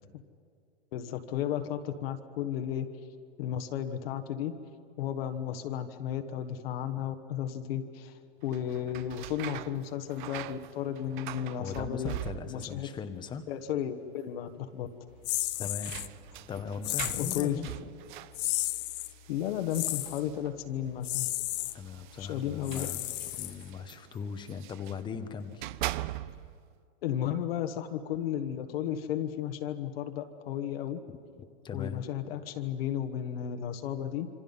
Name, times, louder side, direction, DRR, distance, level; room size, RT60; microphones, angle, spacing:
voice 1, 0.9-2.9 3.4-4.5 5.0-12.1 12.5-12.9 13.5-14.9 17.1-17.6 19.3-21.3 22.2-22.9 27.0-31.0 31.7-34.3, left 10 dB, 55° left, 7 dB, 1.4 m, -34 dB
sound 1, 8.4-12.8 13.1-13.8 14.1-14.2 15.3-20.7 21.5-25.0 25.4-26.6, right 15 dB, 45° right, 0.5 m, -42 dB
voice 2, 11.6-13.4 15.6-16.0 16.5-17.9 21.7-25.7 31.1-31.2 31.6-32.0, left 6 dB, 15° left, 9 dB, 1.0 m, -39 dB
sound 2, 15.2-16.1 16.8-17.5 18.3-19.1 19.7-20.2 21.0-21.7 22.6-23.8, left 19 dB, 35° left, 0.7 m, -33 dB
27.0 x 25.5 x 5.5 m, 2.3 s
supercardioid pair, 155°, 34 cm